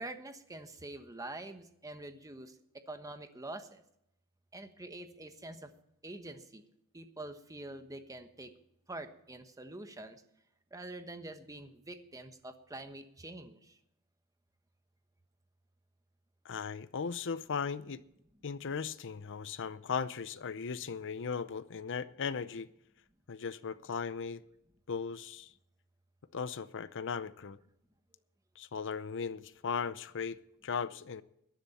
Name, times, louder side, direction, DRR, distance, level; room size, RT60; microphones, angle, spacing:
voice 1, 0.0-3.8 4.5-5.7 6.0-6.7 6.9-8.5 8.9-10.2 10.7-13.8, right 2 dB, 15° right, 1.2 m, -46 dB
voice 2, 16.4-18.0 18.4-22.7 23.3-24.4 24.9-25.5 26.3-27.6 28.6-31.2, left 6 dB, 55° left, 0.6 m, -37 dB
18.5 x 10.5 x 4.3 m
head